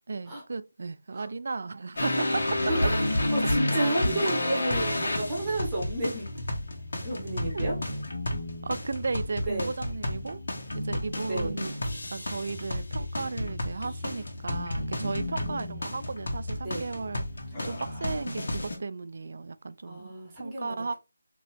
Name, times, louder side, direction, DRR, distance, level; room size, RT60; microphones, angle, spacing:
voice 1, 0.1-2.6 7.5-7.7 8.6-10.4 10.7-11.7 12.1-17.2 17.6-20.9, right 4 dB, 55° right, 0.4 m, -35 dB
sound 1, 2.0-18.8, left 1 dB, 65° left, 1.5 m, -31 dB
voice 2, 2.6-6.3 7.0-7.8 9.4-9.7 11.3-11.5 15.1-15.8 16.6-16.8 19.9-20.9, right 2 dB, 15° right, 1.5 m, -32 dB
sound 2, 12.0-12.7 13.6-14.2 14.9-15.1 15.4-15.6 15.9-16.2 17.5-18.4, left 1 dB, 20° left, 1.1 m, -46 dB
4.1 x 2.9 x 3.4 m
figure-of-eight pair, 165°, 0 cm